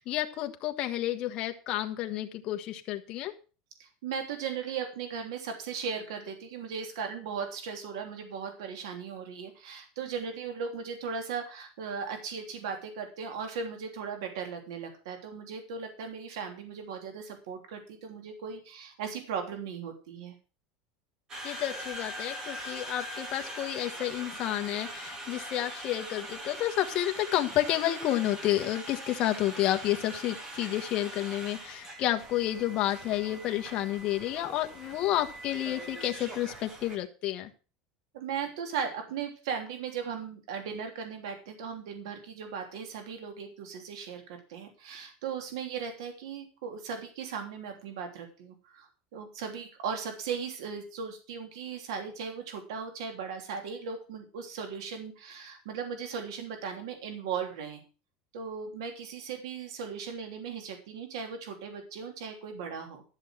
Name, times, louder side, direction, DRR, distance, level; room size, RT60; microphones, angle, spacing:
voice 1, 0.0-3.3 21.4-37.5, left 13 dB, 40° left, 5 dB, 1.4 m, -30 dB
voice 2, 3.8-20.3 38.1-57.8 58.3-63.0, right 6 dB, 85° right, 5 dB, 3.2 m, -37 dB
Conversation, 21.3-37.0, right 1 dB, 25° right, 2.8 m, -42 dB
13.0 x 7.3 x 6.4 m, 0.35 s
supercardioid pair, 160°, 2 cm